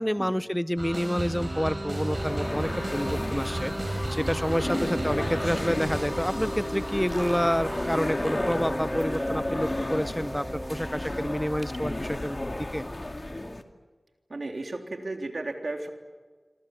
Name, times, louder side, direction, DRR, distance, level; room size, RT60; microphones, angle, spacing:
voice 1, 0.0-12.4 12.7-12.8, equal, 5° left, 15 dB, 0.8 m, -29 dB
sound 1, 0.8-8.8, right 1 dB, 45° right, 7.2 m, -35 dB
sound 2, 1.4-11.3, right 1 dB, 25° right, 2.2 m, -38 dB
sound 3, 2.0-13.6, left 1 dB, 40° left, 2.4 m, -33 dB
voice 2, 14.3-15.9, right 2 dB, 70° right, 4 dB, 3.5 m, -34 dB
26.5 x 26.0 x 8.0 m, 1.4 s
wide cardioid pair, 45°, 0 cm